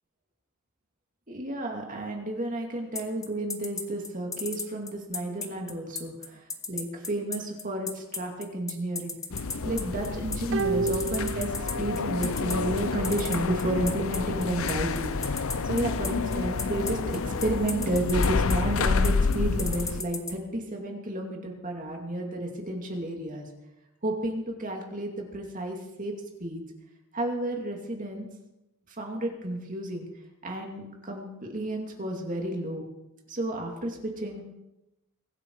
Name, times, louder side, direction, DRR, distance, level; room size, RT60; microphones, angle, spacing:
voice 1, 1.3-9.2 9.6-15.1 15.6-23.5 24.0-26.1 26.4-26.6 27.1-28.3 29.0-30.1 30.4-32.8 33.3-34.4, right 1 dB, 35° right, 1 dB, 2.5 m, -31 dB
sound 1, 3.0-20.3, left 5 dB, 15° left, 1.0 m, -34 dB
sound 2, 9.3-20.0, left 4 dB, 65° left, 0.6 m, -29 dB
sound 3, 10.5-12.2 12.4-12.5, right 4 dB, 55° right, 0.4 m, -31 dB
23.0 x 8.9 x 4.7 m, 0.95 s
head